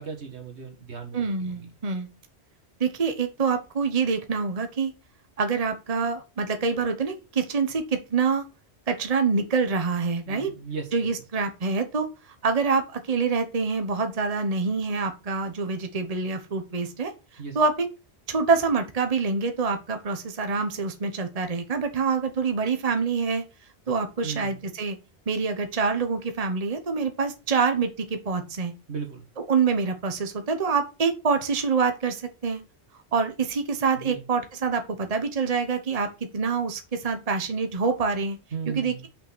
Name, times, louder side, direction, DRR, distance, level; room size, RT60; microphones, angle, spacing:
voice 1, 0.0-1.7 10.3-10.9 17.4-17.6 24.2-24.6 28.9-29.3 34.0-34.2 38.5-39.1, right 6 dB, 75° right, 2.3 m, -36 dB
voice 2, 1.1-2.1 2.8-4.9 5.4-8.4 8.9-10.5 10.9-12.1 12.4-17.9 18.3-23.4 23.9-25.0 25.3-28.7 29.5-32.6 33.1-36.1 36.3-38.4 38.7-39.1, right 5 dB, 35° right, 1.1 m, -26 dB
6.0 x 5.7 x 6.0 m
omnidirectional pair, 1.1 m